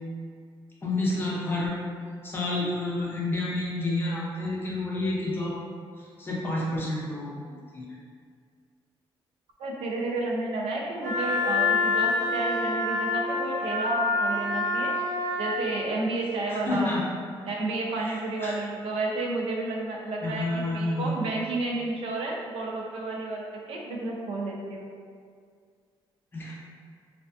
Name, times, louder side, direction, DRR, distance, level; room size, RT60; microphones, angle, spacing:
voice 1, 0.8-1.8 2.2-5.5 6.2-7.9 16.5-17.0 18.0-18.5 20.2-21.1 26.3-26.5, left 2 dB, 25° left, -5 dB, 0.5 m, -29 dB
voice 2, 9.6-14.9 15.4-17.0 17.5-24.9, right 2 dB, 85° right, -1 dB, 0.4 m, -31 dB
Wind instrument woodwind instrument, 11.0-15.6, left 3 dB, 30° right, 0.7 m, -26 dB
2.3 x 2.3 x 2.3 m, 2.1 s
wide cardioid pair, 150°, 10 cm